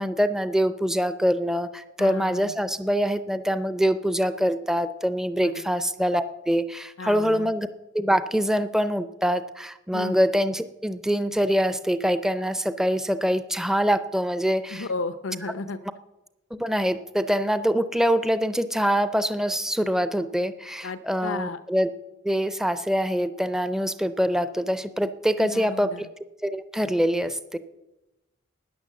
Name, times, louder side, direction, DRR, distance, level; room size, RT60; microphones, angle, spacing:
voice 1, 0.0-7.7 7.9-14.9 16.5-21.9 22.2-26.1 26.4-27.6, equal, 5° right, 12 dB, 0.4 m, -24 dB
voice 2, 2.0-2.5 5.4-5.5 7.0-7.5 9.9-10.1 14.7-15.8 20.8-21.6 25.4-26.0, left 3 dB, 90° left, 12 dB, 0.6 m, -33 dB
13.0 x 9.7 x 7.4 m, 1.0 s
head